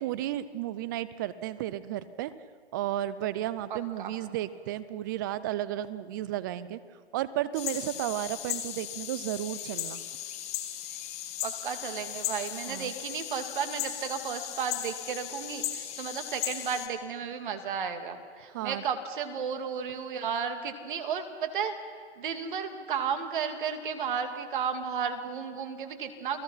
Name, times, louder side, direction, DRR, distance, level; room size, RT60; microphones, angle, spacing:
voice 1, 0.0-2.3 2.7-6.8 7.1-10.0 12.7-12.9 18.5-18.8, right 13 dB, 20° right, 16 dB, 0.5 m, -33 dB
voice 2, 3.7-4.1 11.4-21.7 22.2-26.4, right 7 dB, 45° right, 7 dB, 2.6 m, -33 dB
sound 1, 7.5-16.9, left 12 dB, 20° left, 1.6 m, -37 dB
29.0 x 19.0 x 5.8 m, 2.1 s
hypercardioid pair, 145°, 33 cm